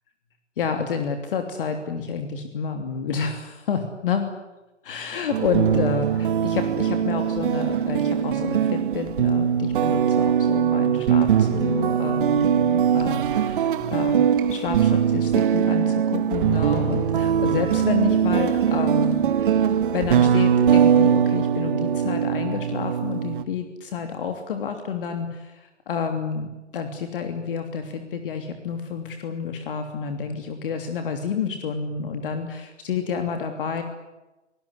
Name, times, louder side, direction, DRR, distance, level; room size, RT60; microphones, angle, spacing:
voice 1, 0.6-4.3 4.8-14.2 14.5-19.2 19.5-33.8, left 6 dB, 50° left, 6 dB, 3.1 m, -29 dB
sound 1, 5.3-23.4, right 8 dB, 45° right, 1.5 m, -21 dB
26.0 x 20.0 x 9.9 m, 1.0 s
figure-of-eight pair, 120°, 35 cm